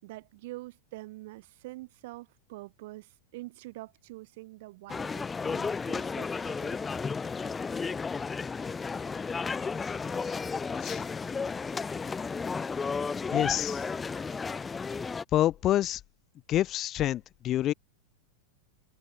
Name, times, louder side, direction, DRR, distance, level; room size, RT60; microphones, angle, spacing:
voice 1, 0.0-6.8, right 20 dB, 50° right, 7.3 m, -45 dB
sound 1, 4.9-15.2, left 5 dB, 15° left, 1.3 m, -33 dB
voice 2, 13.3-13.9 15.3-16.0 16.5-17.7, left 13 dB, 30° left, 2.1 m, -27 dB
figure-of-eight pair, 90°, 0 cm